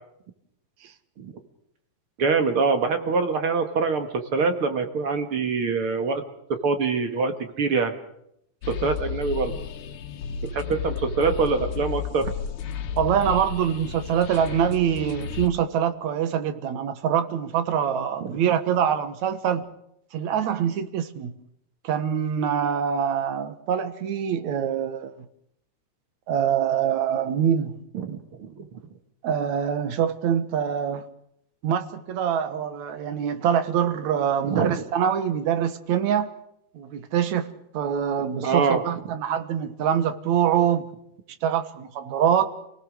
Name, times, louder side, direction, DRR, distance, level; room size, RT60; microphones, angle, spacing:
voice 1, 2.2-6.2 6.6-8.0 8.7-9.6 10.5-12.3 18.2-18.3 27.9-28.8 34.4-34.7 38.4-38.8, right 4 dB, 50° right, 2.3 m, -24 dB
sound 1, 8.6-15.5, left 6 dB, 90° left, 2.9 m, -33 dB
voice 2, 13.0-19.6 20.1-21.3 21.8-25.1 26.3-27.8 29.2-31.0 31.6-36.3 36.7-37.5 37.7-40.9 41.4-42.5, right 8 dB, 70° right, 2.7 m, -24 dB
29.0 x 18.5 x 6.4 m
omnidirectional pair, 3.4 m